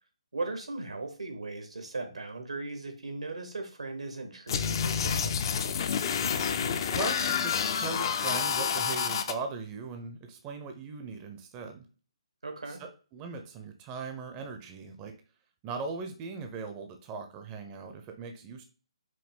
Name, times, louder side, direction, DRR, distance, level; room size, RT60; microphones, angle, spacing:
voice 1, 0.3-5.3 12.4-12.8, right 3 dB, 90° right, 5 dB, 1.2 m, -38 dB
sound 1, 4.5-9.3, left 7 dB, 45° left, 0.4 m, -29 dB
voice 2, 6.9-11.9 12.7-15.2 15.6-18.6, right 4 dB, 20° right, 5 dB, 0.5 m, -39 dB
5.0 x 2.2 x 3.7 m, 0.35 s
hypercardioid pair, 150°, 3 cm